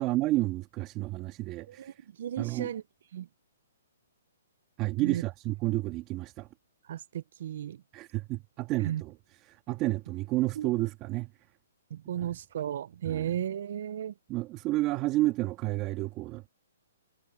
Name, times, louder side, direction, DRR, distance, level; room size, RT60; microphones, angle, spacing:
voice 1, 0.0-1.9 2.4-2.7 4.8-6.5 7.9-9.1 9.5-11.3 12.2-12.3 13.0-13.3 14.3-16.5, right 18 dB, 25° right, 2.0 m, -30 dB
voice 2, 1.7-2.8 3.1-3.3 5.0-5.2 6.9-7.8 8.8-9.0 10.6-10.7 11.9-14.1, right 10 dB, 60° right, 0.8 m, -34 dB
hypercardioid pair, 145°, 0 cm